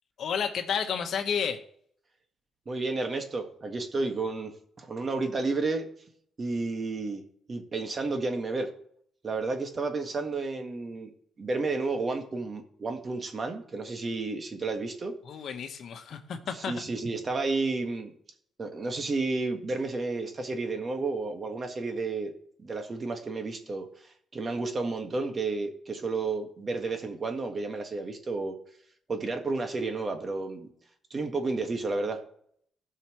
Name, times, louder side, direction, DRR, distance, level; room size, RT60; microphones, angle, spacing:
voice 1, 0.2-1.6 15.3-16.8, left 7 dB, 65° left, 7 dB, 1.1 m, -31 dB
voice 2, 2.6-5.9 6.4-7.2 7.5-8.7 9.2-11.1 11.4-15.1 16.5-18.1 18.6-22.3 22.6-28.6 29.1-30.7 31.1-32.2, right 3 dB, 35° right, 5 dB, 1.7 m, -31 dB
16.0 x 5.7 x 3.1 m, 0.65 s
cardioid pair, 90°, 0 cm